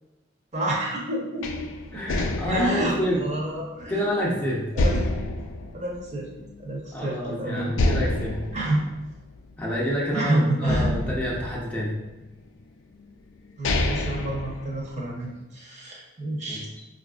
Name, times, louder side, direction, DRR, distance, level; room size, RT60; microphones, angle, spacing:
voice 1, 0.5-1.6 2.5-4.0 4.7-5.0 5.7-6.3 6.6-7.7 8.5-8.8 10.1-10.9 13.6-16.7, right 1 dB, 40° right, -3 dB, 0.9 m, -28 dB
sound 1, 1.4-4.2 4.8-6.7 7.1-7.2 7.7-10.1 10.7-12.3 13.0-13.1 13.5-15.3, left 2 dB, 80° left, 0.4 m, -28 dB
voice 2, 1.9-3.2 3.9-4.6 6.9-8.4 9.6-12.0 16.5-16.6, equal, 10° left, -5 dB, 0.7 m, -28 dB
5.1 x 2.5 x 2.4 m, 1.1 s
head